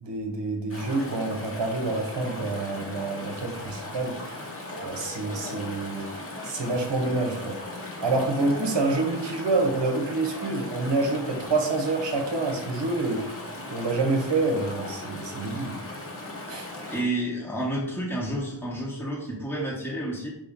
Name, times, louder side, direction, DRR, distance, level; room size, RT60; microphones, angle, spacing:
voice 1, 0.0-4.2 4.8-6.1 6.4-7.6 8.0-13.3 13.7-15.8 16.5-16.7, right 3 dB, 65° right, 4 dB, 0.9 m, -27 dB
Chatter / Stream, 0.7-17.0, left 2 dB, 30° left, 1.0 m, -38 dB
voice 2, 16.5-20.3, right 1 dB, 5° left, -5 dB, 1.0 m, -30 dB
5.1 x 2.7 x 3.6 m, 0.81 s
wide cardioid pair, 55°, 45 cm